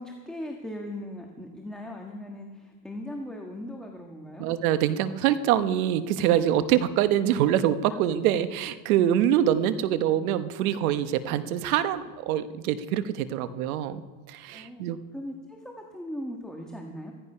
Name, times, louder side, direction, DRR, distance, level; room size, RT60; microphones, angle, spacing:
voice 1, 0.0-4.5 14.5-14.8 15.1-17.1, left 1 dB, ahead, 1 dB, 1.5 m, -39 dB
voice 2, 4.4-14.0 14.3-15.0, right 11 dB, 90° right, 12 dB, 1.1 m, -25 dB
15.0 x 14.5 x 5.6 m, 1.4 s
supercardioid pair, 120°, 41 cm